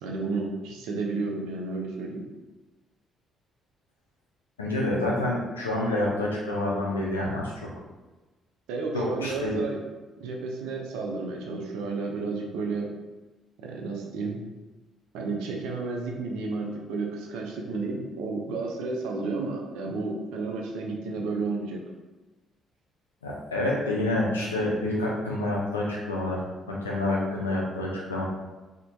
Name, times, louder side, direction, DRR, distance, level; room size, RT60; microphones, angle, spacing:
voice 1, 0.0-2.2 8.7-9.8 10.2-12.9 13.6-14.4 15.1-21.8, right 3 dB, 65° right, 0 dB, 0.4 m, -32 dB
voice 2, 4.6-7.5 8.9-9.5 23.2-28.2, left 1 dB, 80° left, -4 dB, 0.4 m, -28 dB
3.0 x 2.0 x 2.6 m, 1.2 s
figure-of-eight pair, 45°, 0 cm